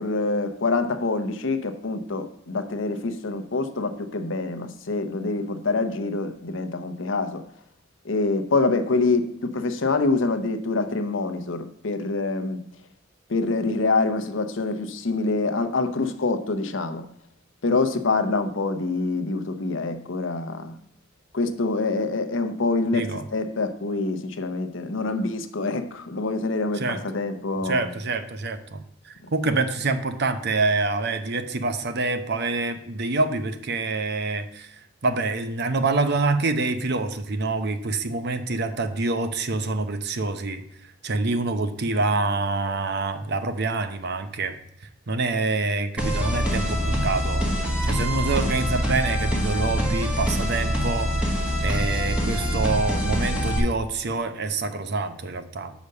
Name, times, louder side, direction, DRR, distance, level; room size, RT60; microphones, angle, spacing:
voice 1, 0.0-7.4 8.0-12.6 13.3-17.0 17.6-20.8 21.3-27.9 29.2-29.3, left 3 dB, 70° left, 9 dB, 0.8 m, -26 dB
voice 2, 27.6-34.7 35.0-40.6 41.0-44.6 45.1-47.4 47.8-51.3 51.6-55.7, right 3 dB, 55° right, 9 dB, 0.8 m, -26 dB
sound 1, 46.0-53.6, equal, 5° right, 1.6 m, -25 dB
6.7 x 5.1 x 6.5 m, 0.73 s
head